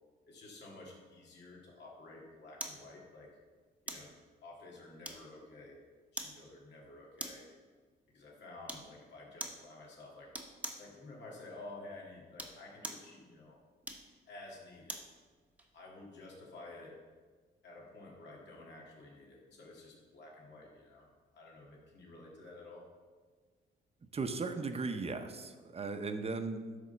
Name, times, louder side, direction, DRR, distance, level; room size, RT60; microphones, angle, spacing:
voice 1, 0.3-3.3 3.9-4.1 4.4-5.8 6.1-7.5 8.1-10.4 10.8-13.6 14.3-15.0 15.7-17.0 17.6-21.1 21.3-22.9, left 2 dB, 60° left, -3 dB, 2.1 m, -51 dB
sound 1, 2.6-2.8 3.9-4.1 5.0-5.5 6.2-6.4 7.2-7.5 8.7-8.9 9.4-9.6 10.3-10.9 12.2-13.1 13.8-15.1 15.6-15.7, right 1 dB, 5° right, 1.0 m, -43 dB
voice 2, 24.1-26.8, right 4 dB, 30° right, 7 dB, 0.8 m, -37 dB
10.5 x 3.6 x 6.8 m, 1.5 s
cardioid pair, 90°, 20 cm